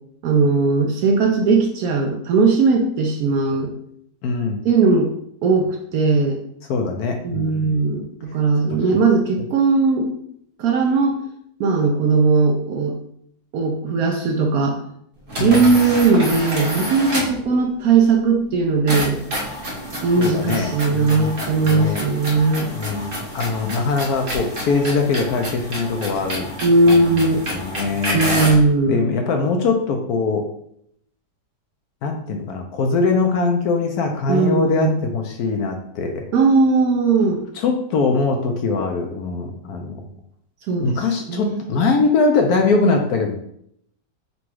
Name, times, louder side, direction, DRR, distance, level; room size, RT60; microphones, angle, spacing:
voice 1, 0.2-3.7 4.6-5.1 5.4-6.4 7.2-10.2 10.6-11.2 11.6-13.0 13.5-14.8 15.4-19.2 20.0-22.7 26.6-27.4 28.1-29.0 34.3-35.0 36.3-37.4 40.7-41.7, right 4 dB, 70° right, 1 dB, 0.9 m, -18 dB
voice 2, 4.2-4.7 6.7-7.8 15.4-15.7 20.2-22.0 22.7-26.6 26.9-28.4 28.9-30.5 32.0-36.3 37.5-40.1 40.8-43.3, left 4 dB, 70° left, 3 dB, 0.9 m, -22 dB
sound 1, 15.3-17.5 18.9-28.7, equal, 40° right, 1.0 m, -28 dB
4.0 x 2.3 x 4.5 m, 0.70 s
omnidirectional pair, 1.9 m